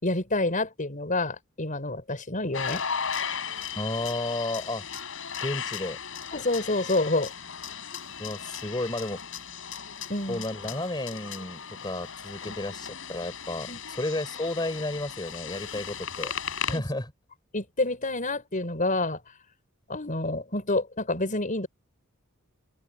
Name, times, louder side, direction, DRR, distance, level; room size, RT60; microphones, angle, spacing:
voice 1, 0.0-2.8 6.3-7.3 10.1-10.4 12.5-12.6 13.7-13.8 16.7-16.8 17.5-19.2 19.9-21.7, left 2 dB, 40° left, 6.1 m, -28 dB
sound 1, 2.5-16.8, left 7 dB, 65° left, 7.7 m, -36 dB
voice 2, 3.7-4.8 5.4-6.0 8.2-9.2 10.3-16.3 16.7-17.1, left 1 dB, 20° left, 3.9 m, -32 dB
head